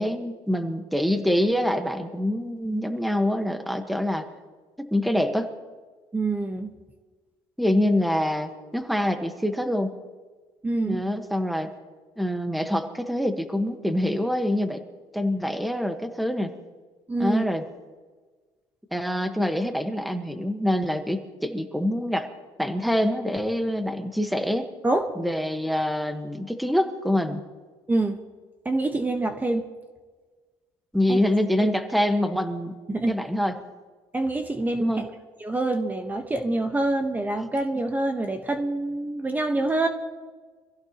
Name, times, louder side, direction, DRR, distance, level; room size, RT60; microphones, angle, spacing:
voice 1, 0.0-4.3 4.8-5.5 7.6-9.9 10.9-11.7 12.2-14.8 15.1-16.5 17.2-17.6 18.9-22.3 22.6-24.7 25.1-27.4 30.9-32.7 33.1-33.5 34.8-35.0, left 1 dB, ahead, 7 dB, 1.3 m, -25 dB
voice 2, 6.1-6.7 10.6-11.0 17.1-17.4 24.8-25.0 27.9-28.2 28.6-29.6 31.1-31.2 32.9-33.2 34.1-35.1 35.4-39.9, right 2 dB, 15° right, 5 dB, 1.2 m, -26 dB
25.5 x 16.0 x 3.0 m, 1.4 s
cardioid pair, 110°, 10 cm